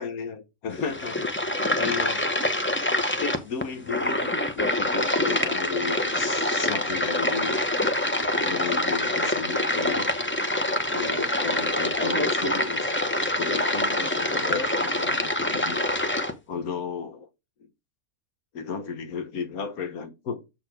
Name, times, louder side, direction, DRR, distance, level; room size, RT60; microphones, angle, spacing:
voice 1, 0.0-1.4 1.8-2.2 3.2-7.6 8.4-10.1 10.9-15.8 16.5-17.3 18.5-20.4, left 5 dB, 80° left, 1.5 m, -33 dB
sound 1, 0.7-16.3, left 1 dB, 10° left, 0.6 m, -25 dB
7.2 x 4.3 x 4.5 m
omnidirectional pair, 1.5 m